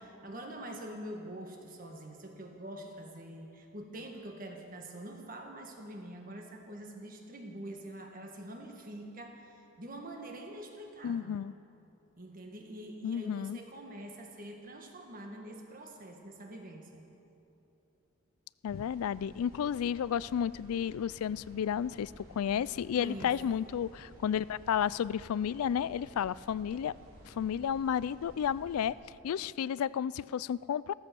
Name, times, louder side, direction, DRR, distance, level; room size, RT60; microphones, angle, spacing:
voice 1, 0.0-11.4 12.2-17.1 23.0-23.3, right 1 dB, 40° right, 3 dB, 1.7 m, -45 dB
voice 2, 11.0-11.5 13.0-13.6 18.6-26.9 27.3-28.9 29.2-30.9, left 8 dB, 85° left, 20 dB, 0.3 m, -32 dB
sound 1, 18.7-28.9, right 1 dB, 85° right, 3.1 m, -54 dB
15.0 x 13.5 x 6.9 m, 2.8 s
head